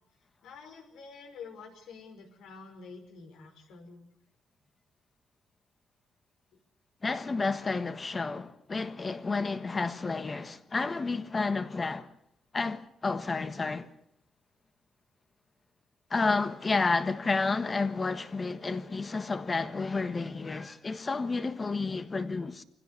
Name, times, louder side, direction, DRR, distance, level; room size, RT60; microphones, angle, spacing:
voice 1, 0.4-4.0, left 5 dB, 85° left, 5.5 m, -48 dB
voice 2, 7.0-12.1 12.5-13.9 16.1-22.6, left 3 dB, 25° left, 1.5 m, -31 dB
25.0 x 16.5 x 8.5 m
cardioid pair, 135°, 0 cm